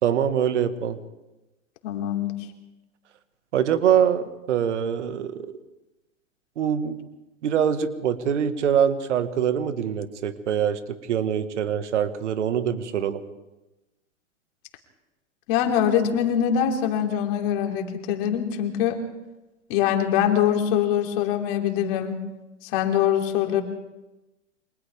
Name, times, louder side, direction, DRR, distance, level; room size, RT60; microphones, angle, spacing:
voice 1, 0.0-1.0 3.5-5.5 6.6-7.0 7.4-13.2, right 8 dB, 70° right, 10 dB, 1.8 m, -24 dB
voice 2, 1.8-2.3 15.5-19.0 19.7-22.2 22.6-23.6, left 9 dB, 45° left, 3 dB, 3.4 m, -23 dB
29.5 x 25.0 x 3.6 m, 1.0 s
hypercardioid pair, 115°, 37 cm